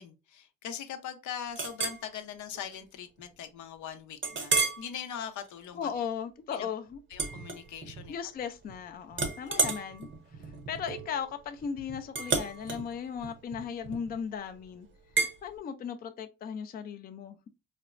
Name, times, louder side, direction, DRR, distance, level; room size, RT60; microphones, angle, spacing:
voice 1, 0.0-5.9 6.5-6.7 7.1-8.1 9.2-9.8, left 8 dB, 75° left, 0.6 m, -41 dB
Chink clink, 1.6-2.0 2.6-2.7 3.2-3.3 4.2-4.9 5.4-5.7 7.1-8.1 8.4-8.8 9.1-14.2 15.2-15.4, right 4 dB, 40° right, 0.7 m, -32 dB
voice 2, 5.7-7.0 8.1-10.1 10.4-14.9 15.4-17.5, left 7 dB, 30° left, 0.4 m, -37 dB
4.1 x 2.0 x 2.4 m
cardioid pair, 90°, 30 cm